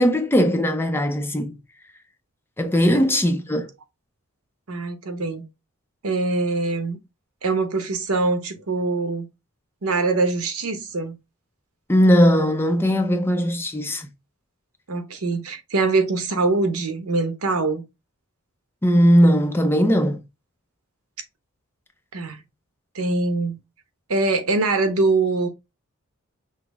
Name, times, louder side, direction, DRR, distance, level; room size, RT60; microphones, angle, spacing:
voice 1, 0.0-1.6 2.6-3.7 11.9-14.1 18.8-20.2, equal, 10° left, 0.5 m, -19 dB
voice 2, 4.7-5.4 6.0-7.0 7.4-9.3 9.8-11.2 14.9-17.8 22.1-22.4 22.9-23.6 24.1-25.5, right 3 dB, 80° right, 1.0 m, -23 dB
5.9 x 2.0 x 3.4 m
head